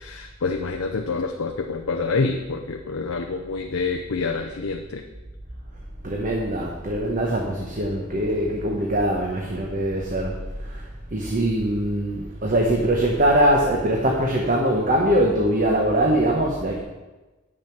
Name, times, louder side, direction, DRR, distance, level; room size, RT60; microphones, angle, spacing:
voice 1, 0.0-5.1, left 4 dB, 80° left, 3 dB, 0.7 m, -27 dB
voice 2, 6.0-16.8, right 1 dB, 40° right, -1 dB, 1.1 m, -22 dB
8.8 x 6.6 x 5.9 m, 1.1 s
head